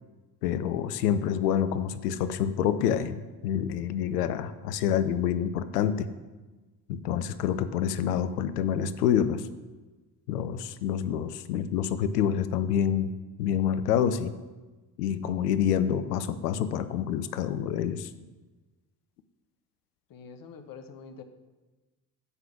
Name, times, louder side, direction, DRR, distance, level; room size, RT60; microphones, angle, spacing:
voice 1, 0.4-6.1 6.9-9.4 10.3-13.1 13.4-14.3 15.0-18.1, left 9 dB, 85° left, 12 dB, 0.6 m, -27 dB
voice 2, 20.1-21.2, left 5 dB, 45° left, 8 dB, 1.0 m, -45 dB
9.8 x 3.9 x 5.8 m, 1.2 s
hypercardioid pair, 50°, 45 cm